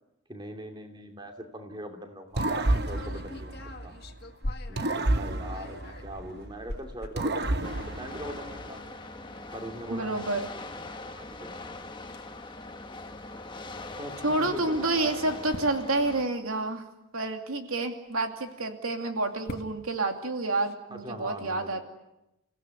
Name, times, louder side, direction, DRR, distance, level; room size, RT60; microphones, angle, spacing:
voice 1, 0.3-4.0 4.7-7.7 8.0-8.8 9.5-10.3 11.1-11.3 11.5-11.6 14.0-15.5 20.9-21.8, equal, 20° right, 4 dB, 2.8 m, -41 dB
sound 1, 2.3-4.9 5.3-7.9 8.7-8.8 9.0-9.1 9.6-9.7 11.3-11.5 12.1-12.2 12.5-12.6 14.1-14.2 15.2-15.8 18.1-18.6 19.2-19.9 20.6-20.7, left 1 dB, 45° left, 1.7 m, -41 dB
sound 2, 2.4-4.3 4.8-6.6 7.2-8.9, right 2 dB, 50° right, 1.0 m, -30 dB
sound 3, 7.6-16.3, left 2 dB, 20° left, 1.3 m, -41 dB
voice 2, 9.9-10.4 14.2-16.8 17.1-21.8, right 2 dB, 80° right, 5 dB, 2.6 m, -29 dB
30.0 x 17.0 x 9.6 m, 0.93 s
head